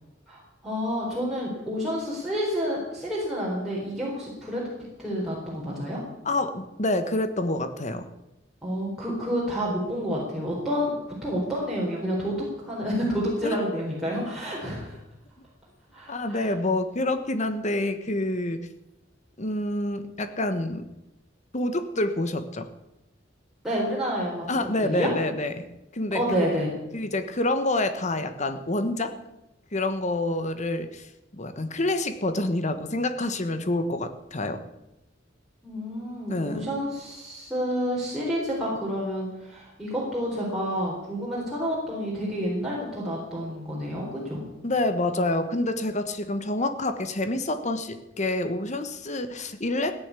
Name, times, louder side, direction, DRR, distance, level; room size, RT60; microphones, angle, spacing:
voice 1, 0.3-4.6 5.0-6.0 8.6-10.9 11.2-15.0 15.9-16.5 23.6-24.4 24.8-25.1 26.1-26.7 35.6-44.5, equal, ahead, -7 dB, 4.2 m, -29 dB
voice 2, 6.2-8.1 13.4-13.8 14.6-14.7 16.1-18.7 19.4-20.9 21.5-22.7 24.5-25.7 25.9-26.5 26.9-29.2 29.7-31.1 31.3-34.6 36.3-36.7 44.6-50.0, left 2 dB, 40° left, 10 dB, 1.3 m, -27 dB
16.5 x 10.0 x 8.4 m, 0.94 s
head